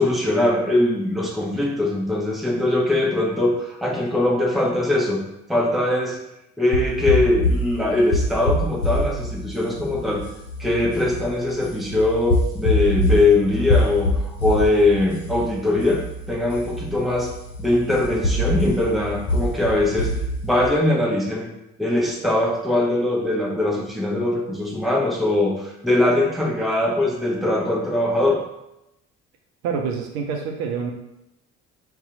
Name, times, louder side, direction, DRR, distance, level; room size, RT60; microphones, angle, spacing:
voice 1, 0.0-5.2 5.5-6.2 6.6-10.2 10.6-16.0 16.3-17.3 17.6-20.1 20.4-21.5 21.8-28.4, left 2 dB, ahead, -3 dB, 0.8 m, -21 dB
sound 1, 6.7-20.7, left 1 dB, 70° left, 0.9 m, -25 dB
voice 2, 29.6-30.9, right 6 dB, 65° right, 2 dB, 0.5 m, -26 dB
2.7 x 2.2 x 3.8 m, 0.87 s
figure-of-eight pair, 55°, 37 cm